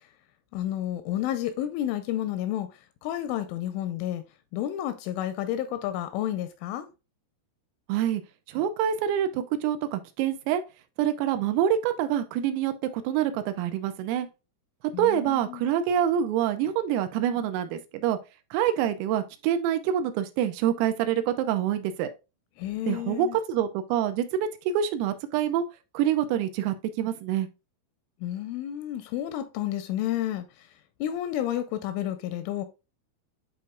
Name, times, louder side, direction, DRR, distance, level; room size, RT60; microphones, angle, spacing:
voice 1, 0.5-2.7 3.0-4.2 4.5-6.9 14.9-15.6 22.6-23.4 28.2-30.7 31.0-32.7, left 12 dB, 85° left, 2.9 m, -31 dB
voice 2, 7.9-8.2 8.5-10.6 11.0-14.3 15.0-18.2 18.5-22.1 22.9-25.6 26.0-27.5, right 10 dB, 90° right, 3.4 m, -26 dB
11.0 x 3.9 x 2.3 m
omnidirectional pair, 5.9 m